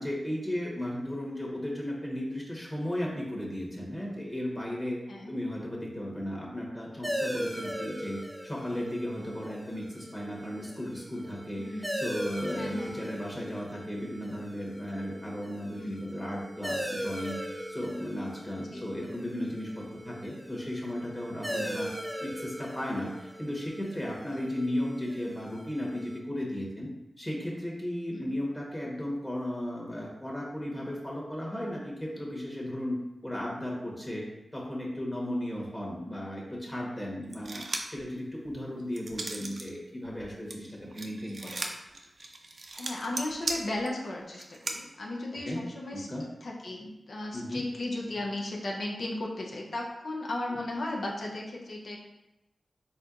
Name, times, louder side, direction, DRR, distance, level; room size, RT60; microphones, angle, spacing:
voice 1, 0.0-5.0 5.3-11.6 12.0-21.9 22.2-26.9 27.2-34.3 34.5-41.6 45.4-45.6 45.9-46.2 47.3-47.6, left 1 dB, 20° left, -3 dB, 1.2 m, -35 dB
sound 1, 7.0-26.2, equal, 15° right, 0.7 m, -39 dB
voice 2, 11.6-12.0 12.5-12.9 15.8-16.0 18.6-18.9 21.5-21.8 24.3-24.4 28.1-28.4 41.4-41.7 42.8-46.1 46.4-52.0, left 2 dB, 75° left, -2 dB, 0.6 m, -36 dB
sound 2, 37.3-38.0 38.5-39.7 40.0-44.8, right 2 dB, 65° right, 0.5 m, -37 dB
4.3 x 3.7 x 2.5 m, 0.95 s
cardioid pair, 45°, 0 cm